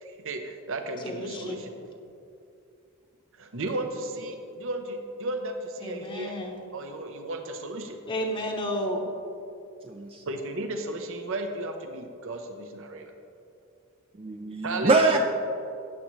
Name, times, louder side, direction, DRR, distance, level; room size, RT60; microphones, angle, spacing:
voice 1, 0.0-1.7 3.4-6.4 6.7-8.0 10.3-13.1 14.6-15.2, right 2 dB, 65° right, 0.8 m, -34 dB
voice 2, 1.0-1.6 5.8-6.6 8.1-9.1, equal, 25° left, 0.9 m, -32 dB
voice 3, 9.9-10.2 14.2-15.2, right 3 dB, 25° right, 0.4 m, -24 dB
13.5 x 9.3 x 3.2 m
head